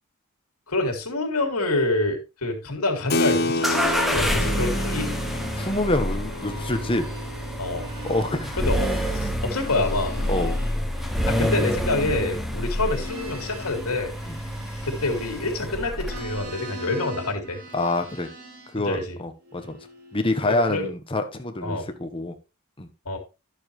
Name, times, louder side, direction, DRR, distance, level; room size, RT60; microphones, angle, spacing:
voice 1, 0.7-5.1 7.6-7.9 8.6-10.2 11.2-14.1 14.8-17.6 18.8-19.2 20.4-20.9 21.6-21.9 23.1-23.2, left 2 dB, 80° left, 3 dB, 2.5 m, -27 dB
Keyboard (musical), 3.1-9.1, left 2 dB, 45° left, 0.8 m, -30 dB
sound 1, 3.6-16.5, equal, ahead, 0.9 m, -28 dB
sound 2, 4.6-5.9 6.2-15.7 16.0-18.8 19.4-20.7, left 1 dB, 75° right, 4.6 m, -42 dB
voice 2, 5.6-7.0 8.0-8.6 10.3-10.6 14.3-14.4 17.7-18.3 18.7-19.8 20.1-22.3 22.8-22.9, left 2 dB, 25° left, 6 dB, 1.1 m, -26 dB
11.5 x 7.0 x 3.2 m, 0.27 s
head